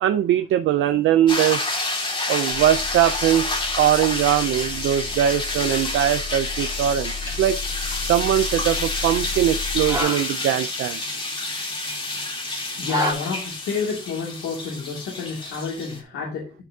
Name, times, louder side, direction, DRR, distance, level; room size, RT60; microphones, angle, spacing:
voice 1, 0.0-1.8 2.3-7.6 8.0-11.0, right 11 dB, 70° right, 9 dB, 0.6 m, -21 dB
sound 1, 1.3-16.0, left 2 dB, 25° left, 2.1 m, -29 dB
sound 2, 2.5-10.0, left 5 dB, 5° left, 2.4 m, -34 dB
sound 3, 6.9-13.1, equal, 20° right, 2.4 m, -33 dB
voice 2, 12.8-16.6, left 5 dB, 90° left, -2 dB, 2.5 m, -29 dB
10.0 x 6.0 x 2.8 m, 0.33 s
cardioid pair, 135°, 21 cm